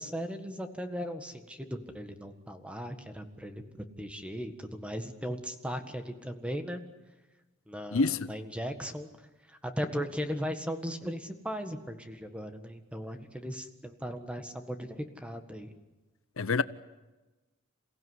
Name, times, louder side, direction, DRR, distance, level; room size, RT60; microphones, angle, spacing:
voice 1, 0.0-6.8 7.7-9.1 9.5-15.7, equal, 5° right, 1.6 m, -37 dB
voice 2, 7.9-8.3 16.4-16.6, left 4 dB, 75° left, 0.7 m, -26 dB
28.5 x 16.0 x 9.7 m
head